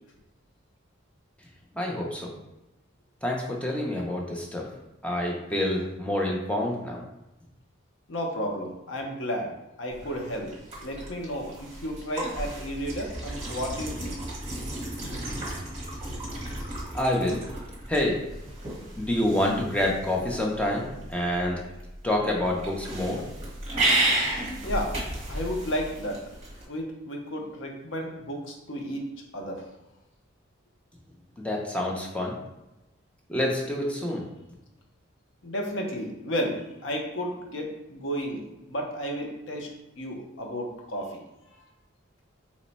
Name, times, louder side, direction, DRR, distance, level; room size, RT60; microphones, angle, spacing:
voice 1, 1.8-2.3 3.2-4.7 5.0-7.0 16.9-17.4 17.9-18.1 19.0-21.6 22.0-23.2 31.4-32.4 33.3-34.2, left 1 dB, 5° left, -2 dB, 0.4 m, -27 dB
voice 2, 8.1-9.5 9.8-10.5 10.8-14.2 24.6-25.0 25.3-26.2 26.7-29.1 29.3-29.6 35.4-39.7 40.0-41.2, equal, 65° left, 1 dB, 0.6 m, -32 dB
sound 1, 9.9-26.6, right 1 dB, 30° right, 0.9 m, -33 dB
3.0 x 2.1 x 4.0 m, 0.97 s
head